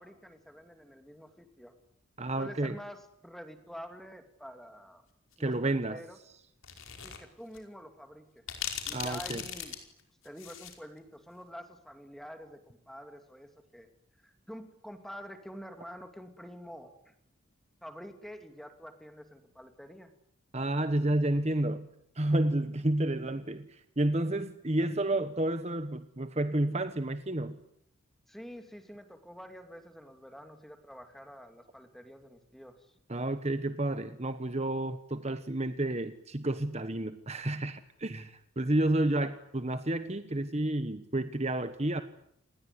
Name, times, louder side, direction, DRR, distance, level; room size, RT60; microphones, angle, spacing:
voice 1, 0.0-1.7 2.4-5.0 5.4-6.2 7.0-8.4 8.8-9.7 10.2-13.9 14.2-17.1 17.8-20.1 28.3-32.9, equal, ahead, 7 dB, 2.7 m, -47 dB
voice 2, 2.2-2.8 5.4-6.0 8.9-9.4 20.5-21.9 22.2-27.6 33.1-42.0, right 1 dB, 30° right, 10 dB, 1.2 m, -30 dB
sound 1, 6.6-7.2 7.5-7.6 8.5-10.8, left 9 dB, 75° left, 5.1 m, -39 dB
28.5 x 20.0 x 9.7 m, 0.75 s
head